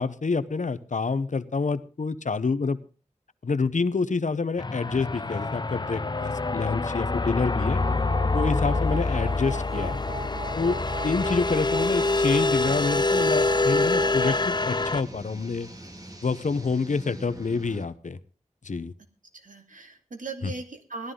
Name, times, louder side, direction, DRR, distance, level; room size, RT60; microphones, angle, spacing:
voice 1, 0.0-2.8 3.4-7.8 8.3-10.0 10.6-15.7 16.2-18.2 18.6-18.9, left 4 dB, 70° left, 14 dB, 0.8 m, -27 dB
sound 1, 4.6-15.0, left 3 dB, 35° left, 0.5 m, -26 dB
voice 2, 7.6-8.0 19.3-21.1, right 3 dB, 85° right, 5 dB, 2.3 m, -39 dB
sound 2, 7.8-14.4, right 4 dB, 55° right, 1.7 m, -38 dB
sound 3, 11.8-17.9, right 1 dB, 30° right, 2.3 m, -44 dB
17.5 x 12.5 x 3.8 m, 0.37 s
wide cardioid pair, 55°, 13 cm